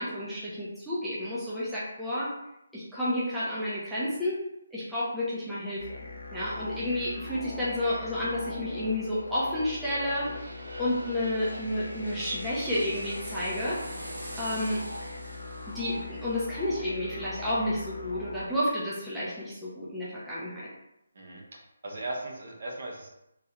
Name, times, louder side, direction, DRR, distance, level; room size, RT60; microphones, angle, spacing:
voice 1, 0.0-2.3 2.7-4.4 4.7-6.0 6.3-13.8 14.4-14.8 15.7-20.7, left 1 dB, ahead, -12 dB, 0.6 m, -31 dB
sound 1, 5.8-18.4, left 2 dB, 70° left, 0.7 m, -41 dB
sound 2, 8.9-18.5 18.9-19.0, right 1 dB, 90° right, 1.1 m, -45 dB
voice 2, 21.1-23.1, right 2 dB, 50° right, -1 dB, 0.9 m, -38 dB
3.2 x 2.7 x 3.5 m, 0.84 s
hypercardioid pair, 170°, 0 cm